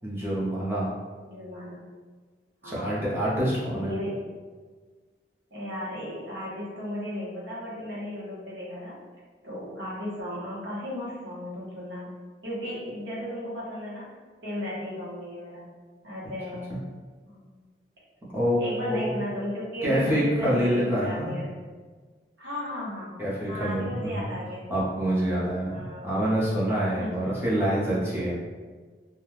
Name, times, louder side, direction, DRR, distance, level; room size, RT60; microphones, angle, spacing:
voice 1, 0.0-0.9 2.6-3.9 18.3-18.6 18.9-19.2 19.8-21.4 23.2-24.3 24.7-28.4, equal, 15° right, -7 dB, 0.6 m, -26 dB
voice 2, 1.2-1.8 2.6-3.1 3.7-4.2 5.5-9.0 9.4-12.2 12.4-14.1 14.4-15.7 16.0-16.7 17.2-17.6 18.6-21.5 22.4-23.2 23.5-24.7 25.7-26.1 27.0-27.2, left 1 dB, 85° right, -7 dB, 1.0 m, -35 dB
2.4 x 2.2 x 3.1 m, 1.4 s
head